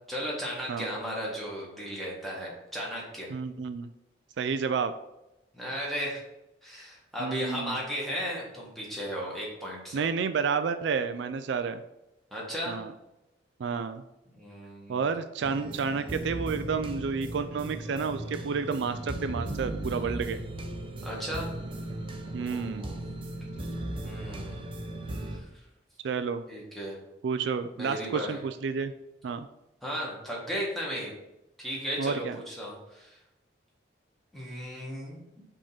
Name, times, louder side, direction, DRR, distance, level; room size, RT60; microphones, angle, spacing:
voice 1, 0.1-3.3 5.5-6.2 6.6-10.1 12.3-12.8 14.3-15.1 21.0-21.5 22.4-22.9 23.5-23.7 24.0-24.7 25.1-25.4 26.5-27.0 27.7-28.4 29.8-31.1 31.6-33.2 34.3-35.4, equal, ahead, -5 dB, 1.6 m, -35 dB
voice 2, 3.3-3.9 4.4-4.9 7.2-7.8 9.9-11.8 12.7-12.9 13.6-14.0 14.9-20.4 22.3-22.9 26.0-26.4 27.2-28.9 29.2-29.5 32.0-32.4, right 5 dB, 70° right, 9 dB, 0.3 m, -30 dB
sound 1, 15.4-25.4, right 1 dB, 25° right, 0.7 m, -37 dB
5.1 x 3.7 x 5.6 m, 0.93 s
head